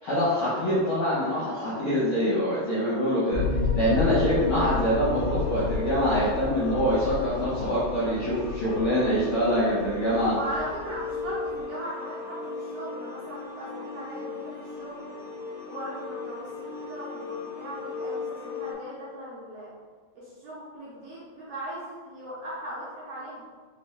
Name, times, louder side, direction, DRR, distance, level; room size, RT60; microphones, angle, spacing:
voice 1, 0.0-3.4 3.7-10.4, equal, 65° left, -9 dB, 1.4 m, -25 dB
sound 1, 3.3-11.6, left 4 dB, 45° right, 1.3 m, -32 dB
sound 2, 3.8-18.7, left 4 dB, 90° left, 0.9 m, -38 dB
voice 2, 10.4-15.0 15.6-19.7 20.1-23.5, right 1 dB, 70° right, -8 dB, 1.6 m, -38 dB
4.4 x 3.3 x 3.2 m, 1.5 s
omnidirectional pair, 3.7 m